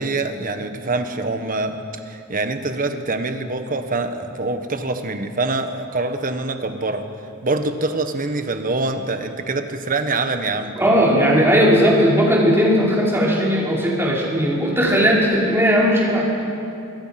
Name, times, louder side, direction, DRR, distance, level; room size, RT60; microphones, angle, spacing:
voice 1, 0.0-1.8 2.1-7.0 7.4-10.7 11.1-11.2, right 3 dB, 40° right, 7 dB, 1.5 m, -25 dB
voice 2, 10.8-16.2, equal, 10° right, -5 dB, 4.9 m, -17 dB
26.5 x 21.0 x 6.0 m, 2.7 s
head